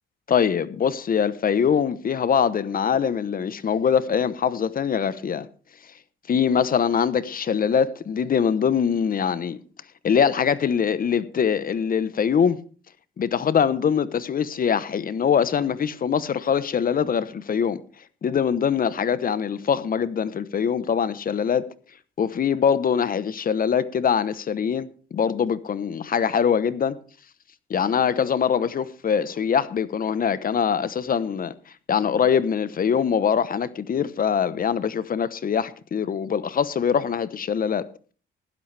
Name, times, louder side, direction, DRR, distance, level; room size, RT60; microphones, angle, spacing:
voice 1, 0.3-5.5 6.3-9.6 10.0-12.6 13.2-17.8 18.2-21.6 22.2-27.0 27.7-31.5 31.9-37.9, left 7 dB, 45° left, 1.0 m, -23 dB
16.0 x 11.5 x 3.4 m
cardioid pair, 90°, 20 cm